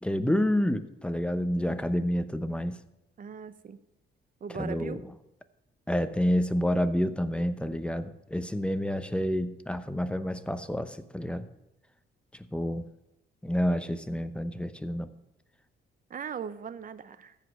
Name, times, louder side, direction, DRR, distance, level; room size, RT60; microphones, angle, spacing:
voice 1, 0.0-2.7 4.6-5.0 5.9-11.4 12.5-12.8 13.4-15.1, equal, 5° left, 11 dB, 0.8 m, -28 dB
voice 2, 3.2-3.8 4.4-5.0 16.1-17.4, right 7 dB, 45° right, 14 dB, 0.8 m, -39 dB
14.0 x 5.1 x 7.3 m, 0.88 s
cardioid pair, 90°, 20 cm